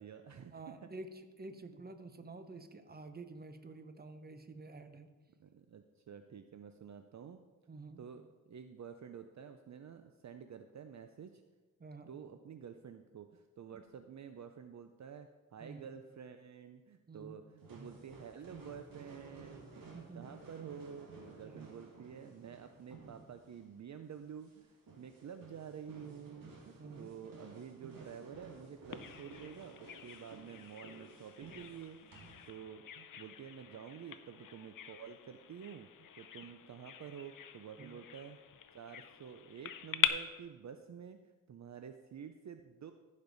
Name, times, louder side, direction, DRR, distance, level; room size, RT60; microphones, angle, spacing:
voice 1, 0.0-0.9 5.4-7.4 8.0-11.4 12.1-35.9 36.2-38.4 38.7-41.2 41.5-42.9, right 7 dB, 55° right, 7 dB, 0.5 m, -50 dB
voice 2, 0.5-5.1 7.7-8.1 11.8-12.1 13.7-13.8 15.6-15.9 17.1-17.4 17.8-17.9 19.9-20.3 21.4-21.7 26.8-27.1 37.8-38.0, right 3 dB, 30° right, 8 dB, 0.8 m, -50 dB
sound 1, 17.6-32.5, right 3 dB, 85° right, 1.9 m, -55 dB
Bird vocalization bird call bird song, 28.9-40.1, left 9 dB, 70° left, 0.6 m, -42 dB
15.0 x 5.3 x 4.0 m, 1.2 s
wide cardioid pair, 85°, 33 cm